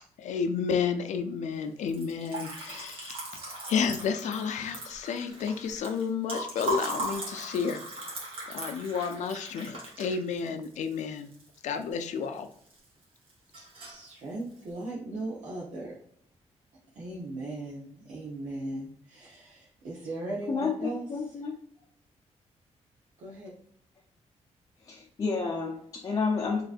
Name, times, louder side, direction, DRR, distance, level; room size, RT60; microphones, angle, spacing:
voice 1, 0.2-3.2 3.7-7.8 8.5-11.3 11.6-12.5, left 6 dB, 85° left, 0.5 m, -31 dB
Liquid, 1.8-12.0 12.4-13.0 13.3-14.1, right 1 dB, 50° right, 1.7 m, -38 dB
voice 2, 13.5-16.0 16.9-21.4 23.2-23.5, right 2 dB, 80° right, 1.1 m, -38 dB
voice 3, 20.5-21.6 24.8-26.6, left 4 dB, 30° left, 0.6 m, -30 dB
5.0 x 3.1 x 2.5 m
wide cardioid pair, 155°, 12 cm